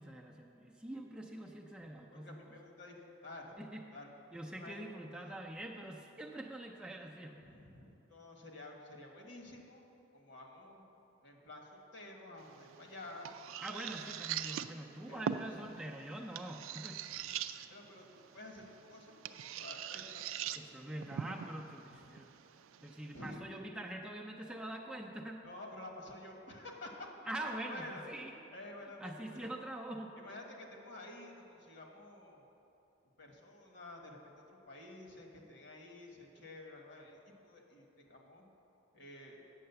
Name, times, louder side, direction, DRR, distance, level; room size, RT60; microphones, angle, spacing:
voice 1, 0.0-2.5 3.6-3.8 4.3-7.5 13.6-17.0 20.5-22.3 22.8-25.4 27.3-28.5 29.0-30.2, right 1 dB, 5° right, -1 dB, 0.5 m, -44 dB
voice 2, 2.1-3.0 3.2-3.7 3.9-4.1 4.5-4.8 7.4-9.8 10.1-10.8 11.2-13.3 15.1-15.5 17.2-17.3 17.7-18.6 18.9-20.3 22.0-22.2 23.1-23.6 25.4-27.1 27.4-28.0 28.5-29.5 30.1-32.5 33.2-38.4 38.9-39.4, left 2 dB, 60° left, 1 dB, 1.4 m, -51 dB
sound 1, 12.4-23.4, right 8 dB, 85° right, 0.4 m, -43 dB
8.7 x 7.5 x 6.8 m, 2.9 s
head